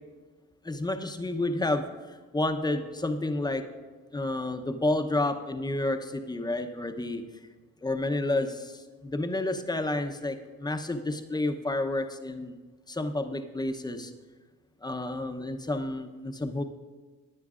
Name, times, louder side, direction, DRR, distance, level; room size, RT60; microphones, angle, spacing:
voice 1, 0.6-3.6 4.1-7.2 7.8-12.6 12.9-14.1 14.8-16.6, left 2 dB, 15° left, 6 dB, 0.8 m, -30 dB
16.5 x 9.6 x 2.5 m, 1.3 s
cardioid pair, 90°, 30 cm